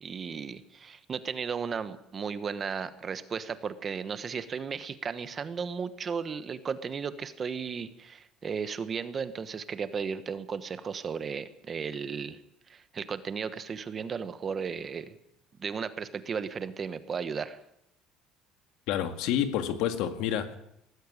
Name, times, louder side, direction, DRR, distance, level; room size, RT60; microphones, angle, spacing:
voice 1, 0.0-12.4 12.7-15.2 15.6-17.6, right 6 dB, 25° right, 1.1 m, -35 dB
voice 2, 18.9-20.6, left 10 dB, 65° left, 1.9 m, -29 dB
20.0 x 14.0 x 9.7 m
cardioid pair, 170°, 0 cm